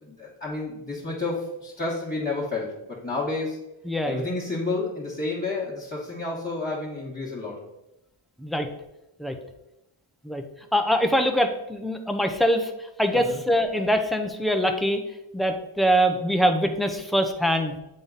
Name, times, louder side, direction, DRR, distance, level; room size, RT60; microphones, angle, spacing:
voice 1, 0.0-3.6 4.1-7.6 13.1-13.4, left 3 dB, 20° left, -6 dB, 1.4 m, -30 dB
voice 2, 3.9-4.3 8.4-8.7 9.2-9.3 10.3-10.4 10.7-12.7 13.0-15.0 15.3-17.8, equal, ahead, 4 dB, 0.7 m, -23 dB
7.6 x 3.8 x 4.0 m, 0.91 s
wide cardioid pair, 85°, 49 cm